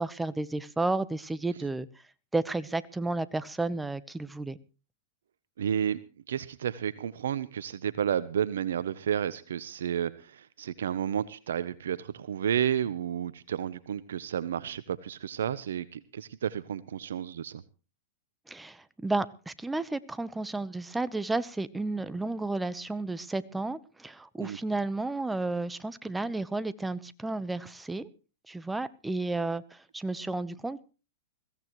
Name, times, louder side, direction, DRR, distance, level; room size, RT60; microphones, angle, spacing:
voice 1, 0.0-1.9 2.3-4.6 18.5-28.1 28.5-30.8, right 2 dB, 5° right, 16 dB, 0.9 m, -32 dB
voice 2, 5.6-6.0 6.3-17.6 24.4-24.6, right 9 dB, 80° right, 16 dB, 0.7 m, -31 dB
21.5 x 16.0 x 3.1 m, 0.35 s
hypercardioid pair, 120°, 0 cm